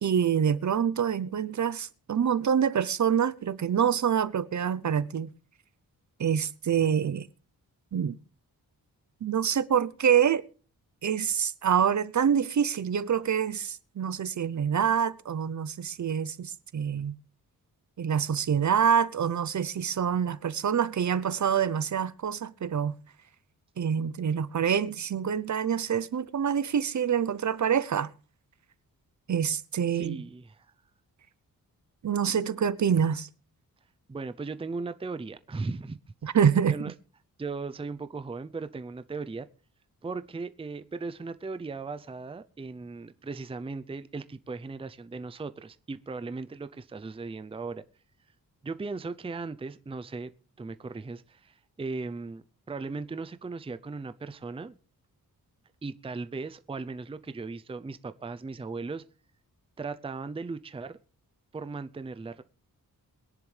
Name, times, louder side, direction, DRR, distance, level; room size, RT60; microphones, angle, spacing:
voice 1, 0.0-5.3 6.2-7.3 7.9-8.1 9.2-10.4 11.0-17.1 18.0-23.0 23.8-28.1 29.3-30.2 32.0-33.3 36.2-36.8, right 8 dB, 55° right, 0.7 m, -26 dB
voice 2, 29.9-30.7 34.1-36.0 36.7-36.9 37.4-39.5 40.0-47.8 48.6-50.3 50.6-54.8 55.8-59.0 59.8-61.0 61.5-62.4, right 4 dB, 15° right, 0.5 m, -37 dB
22.5 x 10.5 x 3.3 m
wide cardioid pair, 140°, 36 cm